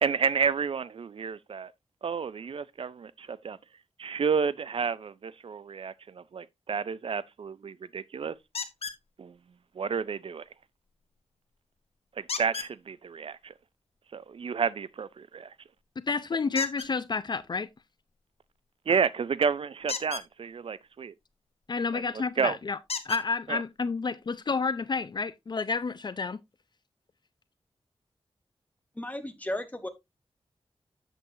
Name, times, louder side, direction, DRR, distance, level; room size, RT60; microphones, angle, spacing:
voice 1, 0.0-1.7 2.0-3.6 4.0-8.3 9.2-9.4 9.8-10.4 12.2-13.5 14.1-15.5 18.9-21.1 21.9-22.0 22.4-22.6 23.5-23.6, right 6 dB, 60° right, 0.4 m, -30 dB
sound 1, 8.5-9.0 12.3-12.7 16.5-16.9 19.8-20.3 21.9-22.0 22.9-23.2 24.2-24.3 24.8-24.9, left 5 dB, 75° left, 1.1 m, -34 dB
voice 2, 16.0-17.7 21.7-22.8 23.0-26.4, left 4 dB, 45° left, 0.5 m, -30 dB
voice 3, 29.0-29.9, left 1 dB, 15° left, 1.2 m, -34 dB
8.1 x 7.7 x 2.7 m
wide cardioid pair, 125°, 10 cm